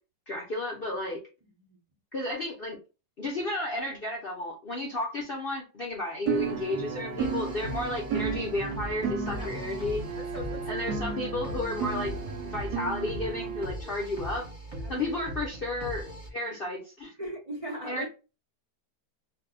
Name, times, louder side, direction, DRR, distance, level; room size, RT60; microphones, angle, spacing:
voice 1, 0.3-1.2 2.1-2.8 3.2-10.1 10.7-14.5 14.9-16.0 16.3-17.1 17.8-18.1, left 2 dB, 60° left, 0.6 m, -33 dB
sound 1, 6.3-13.7, right 5 dB, 75° right, 1.0 m, -33 dB
voice 2, 6.9-7.4 9.4-9.5 10.2-11.0 14.7-15.2 17.2-18.1, right 1 dB, 55° right, 0.3 m, -40 dB
sound 2, 7.2-16.3, equal, 30° right, 0.7 m, -40 dB
2.6 x 2.2 x 3.6 m
omnidirectional pair, 1.8 m